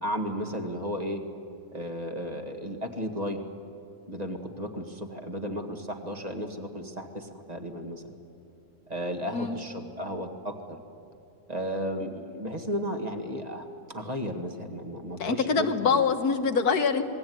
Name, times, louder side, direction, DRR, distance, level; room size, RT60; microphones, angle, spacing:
voice 1, 0.0-1.2 1.7-3.4 4.1-8.2 8.9-10.8 11.5-16.1, equal, 25° right, 5 dB, 2.0 m, -34 dB
voice 2, 15.2-17.0, left 5 dB, 80° left, 8 dB, 1.9 m, -24 dB
27.0 x 20.0 x 9.6 m, 2.7 s
omnidirectional pair, 1.6 m